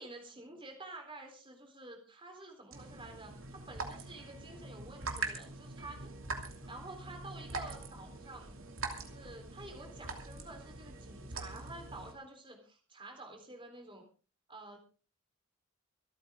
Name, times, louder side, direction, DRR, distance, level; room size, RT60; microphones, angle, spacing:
voice 1, 0.0-6.1 6.7-8.6 8.9-14.0 14.5-14.8, right 2 dB, 25° right, 3 dB, 4.0 m, -50 dB
sound 1, 2.7-12.1, right 3 dB, 70° right, 2.8 m, -43 dB
26.0 x 9.1 x 3.8 m, 0.38 s
head